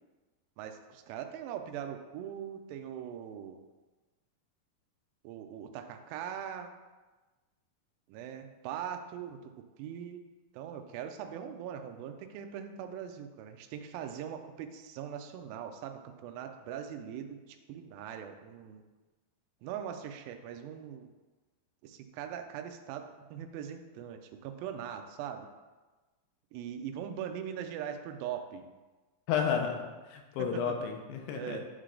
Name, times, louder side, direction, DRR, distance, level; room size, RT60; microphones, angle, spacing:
voice 1, 0.6-3.6 5.2-6.7 8.1-9.5 9.8-10.2 10.5-18.8 19.6-21.1 21.8-25.5 26.5-28.7 30.4-30.9 31.3-31.7, right 9 dB, 90° right, 5 dB, 2.0 m, -41 dB
voice 2, 29.3-31.6, left 7 dB, 85° left, 4 dB, 2.8 m, -32 dB
9.1 x 3.2 x 3.7 m, 1.2 s
omnidirectional pair, 4.7 m